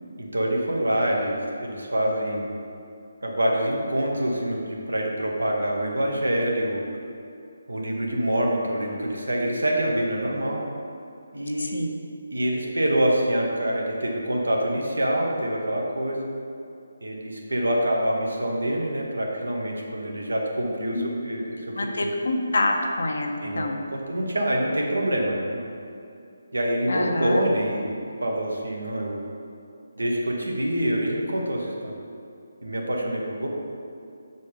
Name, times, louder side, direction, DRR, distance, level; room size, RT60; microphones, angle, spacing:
voice 1, 0.2-2.5 3.2-6.8 7.7-10.6 11.3-11.8 12.3-16.3 17.0-21.7 22.0-22.1 23.4-23.7 23.9-25.6 26.5-27.8 28.2-29.2 30.0-31.9 32.6-33.5, right 1 dB, 90° right, -1 dB, 1.2 m, -26 dB
voice 2, 20.8-21.1 21.7-23.8 26.9-27.5, left 2 dB, 70° left, 3 dB, 0.8 m, -27 dB
5.5 x 4.2 x 5.0 m, 2.6 s
figure-of-eight pair, 155°, 0 cm